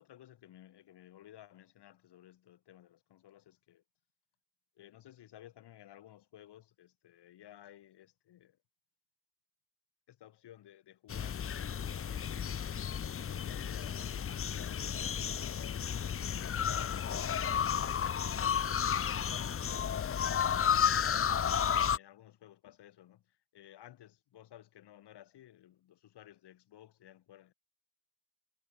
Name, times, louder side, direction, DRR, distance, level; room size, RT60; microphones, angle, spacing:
voice 1, 0.0-3.8 4.7-8.6 10.1-12.3 13.2-14.4 14.8-21.1 21.9-27.5, left 12 dB, 75° left, 7.7 m, -57 dB
sound 1, 11.1-22.0, left 8 dB, 35° left, 0.7 m, -32 dB
hypercardioid pair, 45°, 41 cm